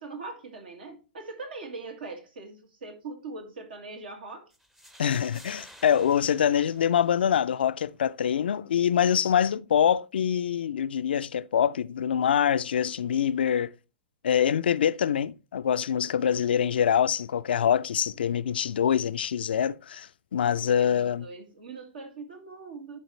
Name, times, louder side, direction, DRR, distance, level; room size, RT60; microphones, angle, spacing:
voice 1, 0.0-4.5 20.4-23.0, right 3 dB, 75° right, 2.1 m, -41 dB
sound 1, 4.5-7.5, equal, 5° right, 0.6 m, -52 dB
voice 2, 5.0-13.7 14.2-21.3, left 8 dB, 75° left, 0.4 m, -25 dB
11.5 x 4.1 x 3.1 m
hypercardioid pair, 110°, 5 cm